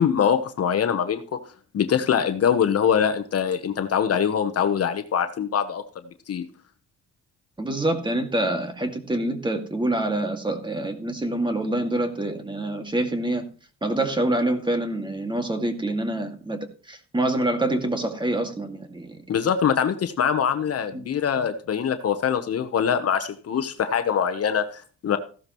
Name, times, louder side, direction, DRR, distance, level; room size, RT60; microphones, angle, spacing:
voice 1, 0.0-1.4 1.7-5.8 6.3-6.4 19.3-25.2, left 8 dB, 55° left, 1.0 m, -23 dB
voice 2, 7.6-13.5 13.8-16.6 16.9-19.2 20.9-21.1, right 1 dB, 15° right, 2.1 m, -26 dB
15.0 x 12.0 x 3.1 m
cardioid pair, 95°, 29 cm